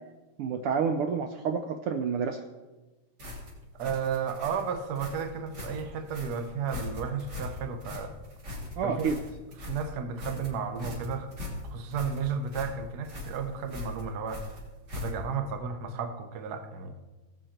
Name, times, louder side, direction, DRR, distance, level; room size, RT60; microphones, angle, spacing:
voice 1, 0.4-2.4 8.8-9.2, right 6 dB, 90° right, 6 dB, 1.2 m, -29 dB
sound 1, 3.2-15.4, left 2 dB, 35° right, 3.4 m, -40 dB
voice 2, 3.8-8.1 8.8-9.1 9.6-11.3 11.6-14.4 14.9-16.9, right 6 dB, 65° right, 7 dB, 0.9 m, -33 dB
18.5 x 8.1 x 4.5 m, 1.2 s
omnidirectional pair, 3.4 m